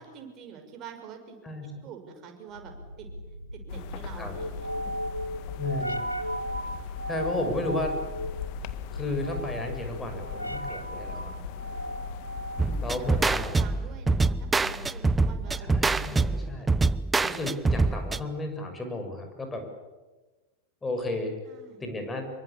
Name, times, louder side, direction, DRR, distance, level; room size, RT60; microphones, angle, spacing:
voice 1, 0.0-1.4 1.8-2.7 3.0-3.1 3.5-4.7 12.7-13.1 13.5-16.7 21.4-21.9, right 7 dB, 35° right, 5 dB, 6.1 m, -46 dB
sound 1, 2.5-15.9, equal, 90° right, 1.3 m, -36 dB
sound 2, 3.7-13.3, left 11 dB, 45° left, 1.9 m, -40 dB
voice 2, 5.6-6.0 7.1-8.2 8.9-11.3 12.8-13.5 15.6-16.7 17.2-19.6 20.8-21.3 21.8-22.3, left 2 dB, 15° left, 5 dB, 6.6 m, -33 dB
sound 3, 12.6-18.2, right 3 dB, 10° right, 0.8 m, -25 dB
27.0 x 23.5 x 8.6 m, 1.2 s
figure-of-eight pair, 90°, 0 cm